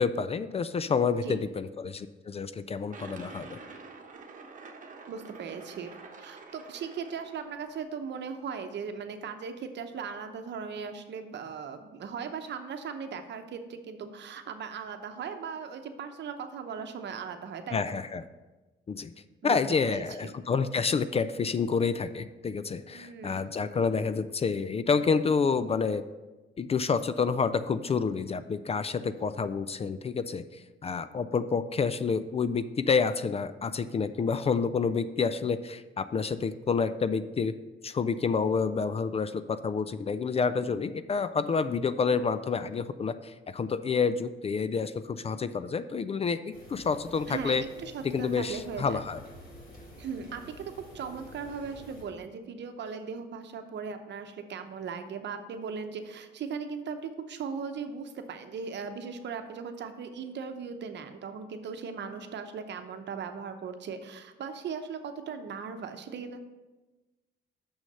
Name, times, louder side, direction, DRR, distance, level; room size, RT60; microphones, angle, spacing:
voice 1, 0.0-3.6 17.7-18.3 18.9-19.1 19.4-26.0 26.6-37.6 37.8-47.6 48.0-49.2, left 5 dB, 30° left, 13 dB, 0.4 m, -29 dB
sound 1, 2.9-7.9, right 4 dB, 40° right, 1.2 m, -47 dB
voice 2, 5.1-5.9 6.2-18.0 19.4-20.3 22.9-23.6 47.3-49.0 50.0-66.4, right 6 dB, 60° right, 7 dB, 0.9 m, -38 dB
sound 2, 46.5-52.0, equal, 50° left, 2.7 m, -49 dB
6.4 x 6.2 x 5.4 m, 1.2 s
cardioid pair, 90°, 20 cm